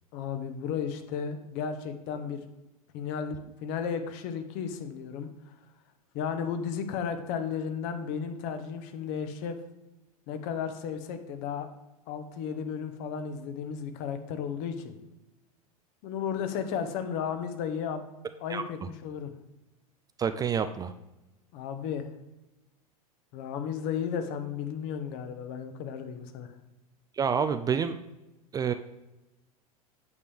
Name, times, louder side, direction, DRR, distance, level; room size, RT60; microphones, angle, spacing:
voice 1, 0.1-2.5 2.9-5.5 6.1-9.6 10.3-11.7 12.1-14.9 16.0-18.0 18.4-19.3 21.5-22.1 23.3-26.5, left 7 dB, 50° left, 8 dB, 1.1 m, -34 dB
voice 2, 20.2-20.9 27.2-28.0 28.5-28.7, right 7 dB, 20° right, 10 dB, 0.4 m, -28 dB
8.5 x 6.8 x 3.5 m, 0.99 s
figure-of-eight pair, 85°, 19 cm